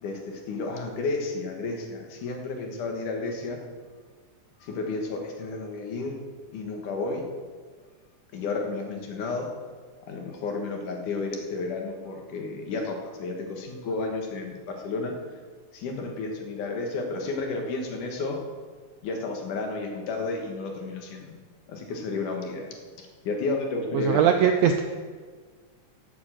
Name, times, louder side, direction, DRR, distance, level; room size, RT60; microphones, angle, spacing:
voice 1, 0.0-3.6 4.6-6.2 6.5-7.3 8.3-9.5 10.1-15.1 15.7-18.4 19.0-21.4 21.7-24.2, left 3 dB, 85° left, 2 dB, 3.0 m, -32 dB
voice 2, 24.0-24.8, right 8 dB, 80° right, 5 dB, 1.6 m, -20 dB
11.5 x 7.2 x 7.3 m, 1.5 s
omnidirectional pair, 3.5 m